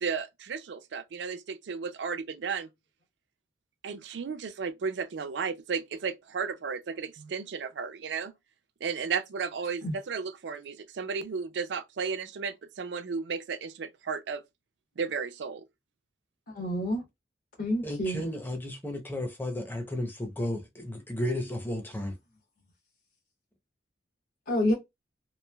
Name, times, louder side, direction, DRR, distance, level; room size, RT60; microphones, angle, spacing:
voice 1, 0.0-2.7 3.8-8.3 8.8-14.4 15.0-15.6, right 5 dB, 70° right, 0.4 m, -34 dB
voice 2, 16.5-17.0 17.6-18.2 24.5-24.7, left 1 dB, 50° left, 1.0 m, -28 dB
voice 3, 17.8-22.2, left 1 dB, 10° left, 0.6 m, -33 dB
3.1 x 2.4 x 2.2 m
head